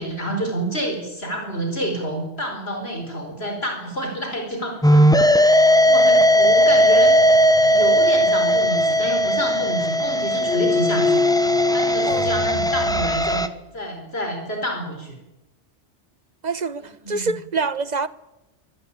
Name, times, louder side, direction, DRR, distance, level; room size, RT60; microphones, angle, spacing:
voice 1, 0.0-7.1 7.7-11.3 11.7-13.4 13.7-15.1 17.0-17.3, right 1 dB, 65° left, 5.0 m, -28 dB
sound 1, 4.8-13.1, left 5 dB, 85° left, 2.4 m, -28 dB
sound 2, 4.8-13.5, equal, 5° left, 1.2 m, -17 dB
voice 2, 16.4-18.1, right 4 dB, 40° right, 1.2 m, -26 dB
24.5 x 18.5 x 8.8 m
omnidirectional pair, 1.2 m